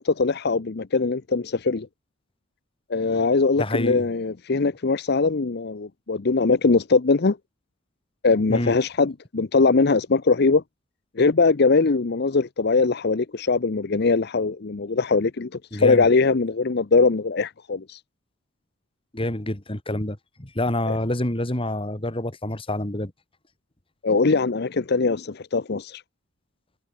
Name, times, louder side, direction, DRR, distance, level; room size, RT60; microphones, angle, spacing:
voice 1, 0.0-1.9 2.9-7.4 8.2-10.6 11.2-18.0 24.0-26.0, left 4 dB, 55° left, 0.7 m, -21 dB
voice 2, 3.6-4.0 8.5-8.7 15.7-16.1 19.1-23.1, left 1 dB, 30° left, 2.4 m, -27 dB
head